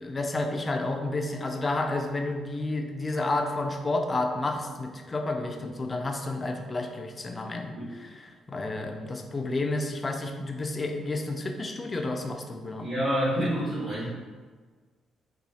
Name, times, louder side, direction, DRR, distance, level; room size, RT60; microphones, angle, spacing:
voice 1, 0.0-12.9, left 2 dB, 30° left, 4 dB, 0.4 m, -31 dB
voice 2, 12.8-14.1, equal, 65° right, -13 dB, 1.4 m, -28 dB
4.0 x 2.3 x 2.7 m, 1.5 s
cardioid pair, 90°, 0 cm